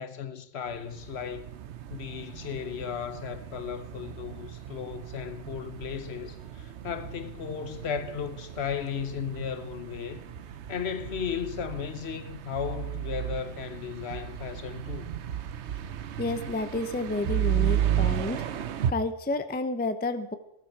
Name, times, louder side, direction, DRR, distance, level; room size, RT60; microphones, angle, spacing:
voice 1, 0.0-1.5 1.9-10.2 10.7-15.1, left 7 dB, 60° left, 1.1 m, -35 dB
sound 1, 0.7-18.9, right 11 dB, 70° right, 1.0 m, -34 dB
voice 2, 16.2-18.4 18.9-20.3, left 2 dB, 10° left, 0.4 m, -30 dB
15.0 x 12.0 x 4.6 m
omnidirectional pair, 1.2 m